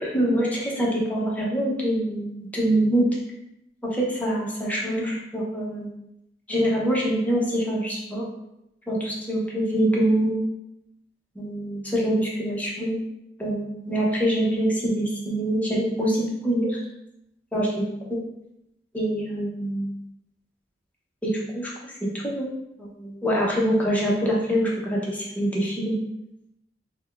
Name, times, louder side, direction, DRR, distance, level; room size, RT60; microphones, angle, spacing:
voice 1, 0.0-3.1 3.8-5.9 6.5-8.2 8.9-10.4 11.4-13.0 13.4-16.8 17.5-18.2 18.9-19.9 21.2-21.7 22.0-22.5 22.8-25.9, right 1 dB, 10° left, -4 dB, 0.8 m, -25 dB
4.2 x 2.2 x 3.4 m, 0.82 s
head